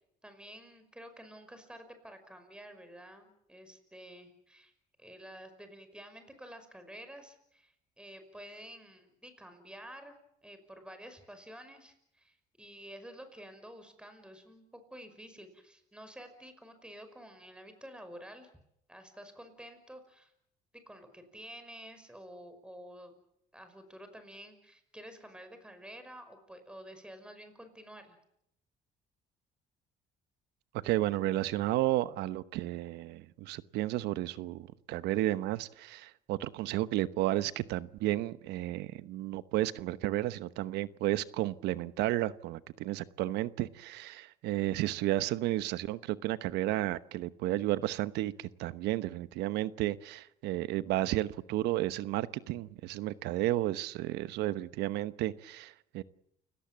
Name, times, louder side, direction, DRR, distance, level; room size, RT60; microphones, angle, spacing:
voice 1, 0.2-4.7 5.0-10.2 10.4-18.5 18.9-20.3 20.9-23.2 23.5-28.2, equal, 5° right, 8 dB, 5.6 m, -50 dB
voice 2, 30.8-56.0, right 15 dB, 90° right, 14 dB, 1.1 m, -32 dB
29.5 x 17.5 x 7.4 m, 0.75 s
cardioid pair, 110°, 17 cm